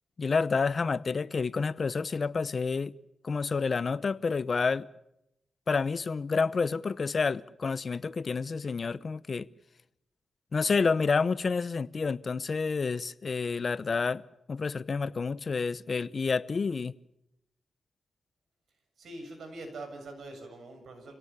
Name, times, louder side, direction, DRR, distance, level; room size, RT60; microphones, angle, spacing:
voice 1, 0.2-2.9 3.2-4.9 5.7-9.5 10.5-14.2 14.5-16.9, left 4 dB, 45° left, 0.8 m, -29 dB
voice 2, 19.0-21.1, right 2 dB, 75° right, 7.3 m, -43 dB
28.0 x 18.0 x 7.1 m
cardioid pair, 90°, 0 cm